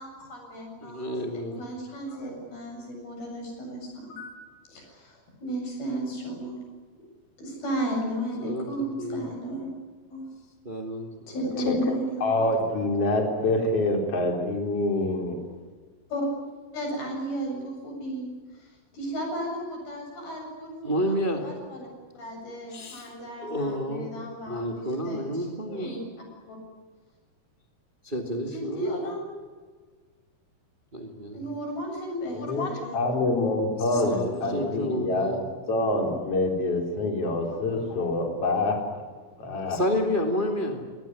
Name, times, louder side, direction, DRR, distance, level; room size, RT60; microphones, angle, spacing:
voice 1, 0.0-4.3 4.7-6.6 7.4-9.7 10.1-10.3 11.3-12.3 16.1-16.3 16.7-21.9 22.1-26.0 26.5-26.6 28.5-29.3 31.3-33.0 33.9-34.1 34.4-34.6, right 1 dB, 90° left, 1 dB, 9.7 m, -34 dB
voice 2, 0.8-1.6 8.4-8.7 9.0-9.2 10.6-11.1 20.8-21.4 22.7-23.1 23.4-24.2 24.5-25.9 28.0-28.9 30.9-31.4 33.9-35.4 39.5-40.8, equal, 15° right, 4 dB, 2.2 m, -30 dB
voice 3, 11.6-15.4 32.3-38.8 39.4-39.8, left 2 dB, 40° left, 3 dB, 4.8 m, -26 dB
24.0 x 19.0 x 9.8 m, 1.5 s
omnidirectional pair, 4.3 m